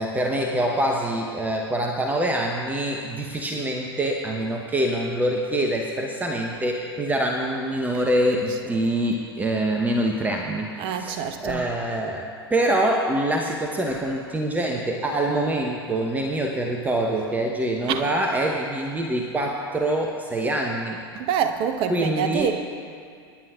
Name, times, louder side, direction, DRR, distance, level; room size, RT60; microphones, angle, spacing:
voice 1, 0.0-21.0 21.9-22.5, right 1 dB, 10° right, 1 dB, 1.0 m, -25 dB
voice 2, 10.8-11.7 17.9-18.1 21.1-22.5, right 8 dB, 40° right, 7 dB, 1.0 m, -26 dB
27.0 x 11.0 x 2.5 m, 2.3 s
figure-of-eight pair, 85°, 13 cm